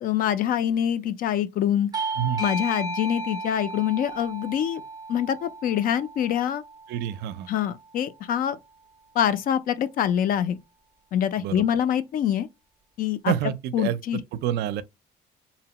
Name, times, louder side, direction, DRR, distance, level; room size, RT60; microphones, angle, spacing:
voice 1, 0.0-1.9 2.4-4.8 5.1-6.6 7.5-8.6 9.2-10.6 11.1-12.5 13.0-13.3 13.7-14.2, left 10 dB, 55° left, 0.4 m, -25 dB
Bell / Doorbell, 1.9-7.1, right 2 dB, 25° right, 0.5 m, -34 dB
voice 2, 6.9-7.5 11.4-11.7 13.3-14.0 14.4-14.8, right 11 dB, 75° right, 0.4 m, -27 dB
2.8 x 2.0 x 2.9 m
cardioid pair, 110°, 17 cm